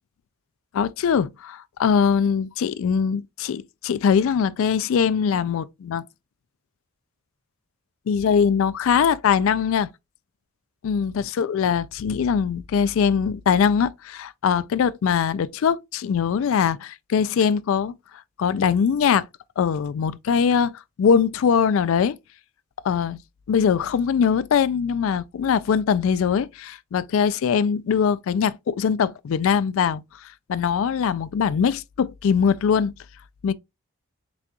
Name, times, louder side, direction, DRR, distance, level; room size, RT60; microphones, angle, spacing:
voice 1, 0.7-6.0 8.1-9.9 10.8-17.9 18.4-19.3 19.6-20.7 21.0-22.2 22.8-23.2 23.5-30.0 30.5-32.9 33.4-33.5, left 7 dB, 60° left, 0.3 m, -22 dB
6.1 x 2.3 x 2.8 m
head